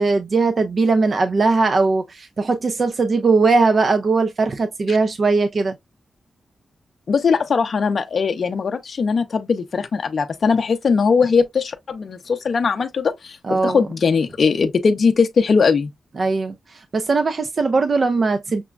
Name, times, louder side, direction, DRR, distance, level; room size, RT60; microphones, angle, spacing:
voice 1, 0.0-5.8 13.4-13.9 16.2-18.6, right 3 dB, 45° right, 0.4 m, -19 dB
voice 2, 7.1-15.9, left 5 dB, 55° left, 0.5 m, -20 dB
5.9 x 2.1 x 2.3 m
wide cardioid pair, 130°, 0 cm